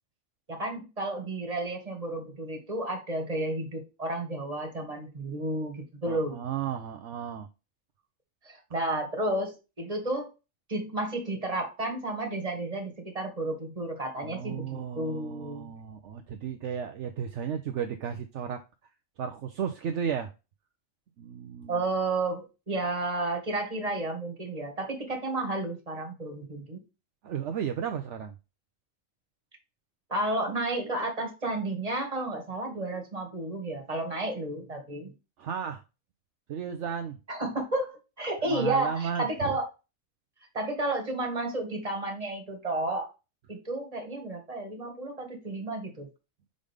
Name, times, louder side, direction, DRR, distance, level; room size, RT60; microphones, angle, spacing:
voice 1, 0.5-6.4 8.4-10.3 10.7-15.7 21.7-26.8 30.1-35.1 37.3-39.7 40.5-43.1 43.5-46.1, right 2 dB, 30° right, 2 dB, 1.9 m, -32 dB
voice 2, 6.1-7.5 14.2-18.6 19.2-20.3 21.2-21.8 27.2-28.3 35.4-35.8 36.5-37.2 38.4-39.6, right 8 dB, 65° right, 6 dB, 0.9 m, -34 dB
5.3 x 5.2 x 3.5 m, 0.29 s
omnidirectional pair, 1.4 m